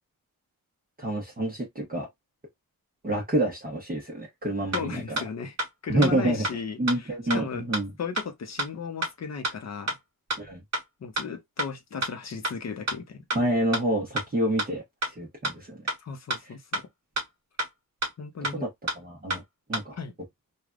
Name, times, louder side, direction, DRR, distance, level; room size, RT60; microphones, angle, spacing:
voice 1, 1.0-2.1 3.0-5.2 5.9-6.4 6.8-7.9 10.4-10.6 13.3-15.8 18.6-18.7 18.9-19.4 19.7-20.0, right 1 dB, 25° right, 0.9 m, -28 dB
voice 2, 4.7-5.6 5.8-7.7 8.0-10.0 11.0-13.2 16.0-16.9 18.2-18.7 20.0-20.1, left 5 dB, 50° left, 0.7 m, -36 dB
sound 1, 4.7-4.8 5.2-5.3 5.6-5.7 6.0-6.1 6.4-6.5 6.9-7.0 7.3-7.4 7.7-7.8 8.2-8.3 8.6-8.7 9.0-9.1 9.4-9.5 9.9-10.0 10.3-10.4 10.7-10.8 11.2-11.3 11.6-11.7 12.0-12.1 12.4-12.5 12.9-13.0 13.3-13.4 13.7-13.8 14.2-14.3 14.6-14.7 15.0-15.1 15.4-15.5 15.9-16.0 16.3-16.4 16.7-16.8 17.2-17.3 17.6-17.7 18.0-18.1 18.4-18.5 18.9-19.0 19.3-19.4 19.7-19.8, right 1 dB, 45° right, 1.2 m, -28 dB
3.3 x 2.3 x 2.4 m
wide cardioid pair, 145°, 35 cm